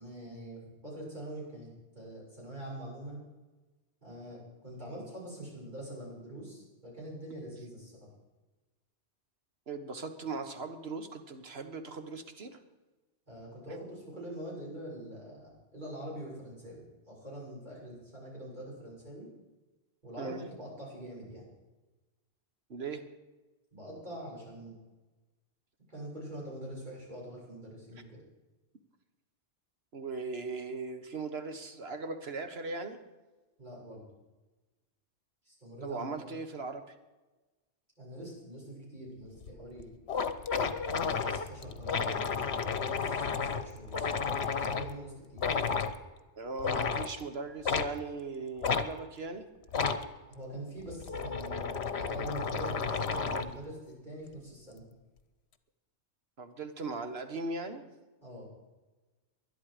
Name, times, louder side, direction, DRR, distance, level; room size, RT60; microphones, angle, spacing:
voice 1, 0.0-1.7 1.9-3.2 4.0-8.1 13.3-19.3 20.0-21.5 23.7-24.7 25.9-28.2 33.6-34.1 35.5-36.3 38.0-39.9 40.9-45.5 50.3-54.8 58.2-58.5, right 1 dB, 40° right, -5 dB, 7.1 m, -44 dB
voice 2, 9.7-12.6 20.2-20.4 22.7-23.0 29.9-33.0 35.8-36.8 46.4-49.5 56.4-57.8, right 3 dB, 60° right, 7 dB, 1.6 m, -39 dB
sound 1, 39.4-39.5 39.8-39.9 40.1-44.9 45.4-45.9 46.6-47.1 47.6-47.9 48.6-48.9 49.7-50.0 50.8-53.6, left 5 dB, 70° left, 1.2 m, -32 dB
20.5 x 11.5 x 5.0 m, 1.2 s
omnidirectional pair, 1.2 m